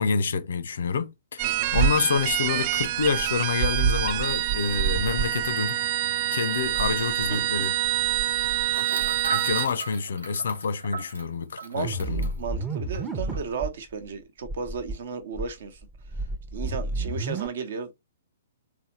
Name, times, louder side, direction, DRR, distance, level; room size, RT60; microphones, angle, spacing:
voice 1, 0.0-5.8 6.3-7.7 9.3-12.3, left 5 dB, 60° left, 0.5 m, -28 dB
sound 1, 1.4-9.7, right 11 dB, 35° right, 0.3 m, -26 dB
sound 2, 6.8-6.9 7.1-7.3 8.7-12.4 12.9-13.0 13.3-13.6, right 4 dB, 85° right, 1.6 m, -36 dB
voice 2, 7.3-7.7 11.6-15.8 16.1-16.2 16.5-18.0, right 5 dB, 55° right, 0.9 m, -35 dB
sound 3, 11.8-13.7 14.0-14.1 14.4-14.9 15.3-17.5, right 2 dB, 15° right, 0.7 m, -31 dB
3.6 x 3.3 x 2.9 m
figure-of-eight pair, 115°, 0 cm